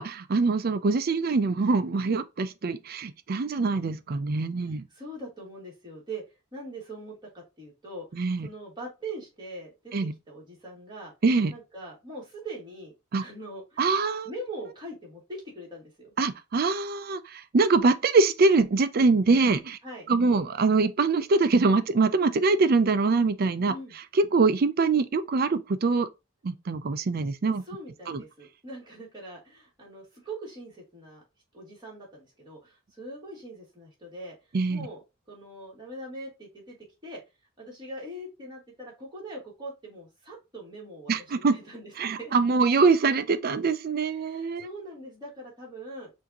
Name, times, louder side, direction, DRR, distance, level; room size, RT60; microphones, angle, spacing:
voice 1, 0.0-4.8 8.1-8.5 9.9-10.1 11.2-11.5 13.1-13.2 13.8-14.3 16.2-19.8 20.1-23.7 24.1-26.1 26.4-27.6 28.1-28.2 34.5-34.9 41.1-41.6 42.0-44.7, right 4 dB, 45° right, 0.4 m, -24 dB
voice 2, 4.7-6.2 6.5-8.1 8.4-9.9 10.3-11.1 11.5-16.1 19.8-20.1 23.7-23.9 27.6-31.2 31.5-34.3 34.7-36.8 37.0-37.2 37.6-42.3 44.2-46.1, right 1 dB, 20° right, 2.4 m, -42 dB
6.2 x 2.7 x 2.8 m
head